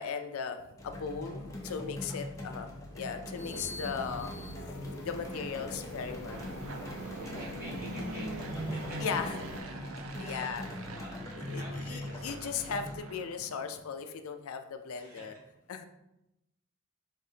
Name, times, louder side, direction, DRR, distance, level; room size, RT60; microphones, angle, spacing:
voice 1, 0.0-4.3 5.0-6.7 9.0-9.4 10.2-10.7 11.5-15.3 15.7-15.8, left 6 dB, 80° left, 7 dB, 0.4 m, -37 dB
sound 1, 0.8-13.0, left 1 dB, 15° left, 0.6 m, -42 dB
Fixed-wing aircraft airplane, 2.8-13.9, right 2 dB, 80° right, 0.5 m, -44 dB
sound 2, 3.4-9.6, left 1 dB, 50° left, 0.8 m, -44 dB
voice 2, 7.3-8.3 8.6-9.0 10.1-12.3 12.6-12.7 15.0-15.4, equal, 10° right, -7 dB, 1.3 m, -50 dB
4.9 x 3.5 x 2.8 m, 0.90 s
head